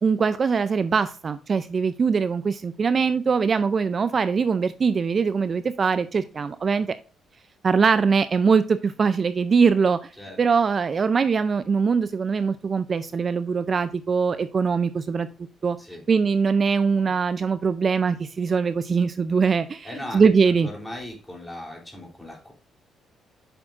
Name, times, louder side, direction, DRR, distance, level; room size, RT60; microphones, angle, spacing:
voice 1, 0.0-7.0 7.6-10.1 10.4-15.3 15.6-15.8 16.1-20.7, right 5 dB, 40° right, 12 dB, 0.4 m, -22 dB
voice 2, 19.8-22.5, left 1 dB, 10° left, -1 dB, 3.1 m, -38 dB
7.8 x 6.0 x 2.4 m, 0.34 s
cardioid pair, 90°, 0 cm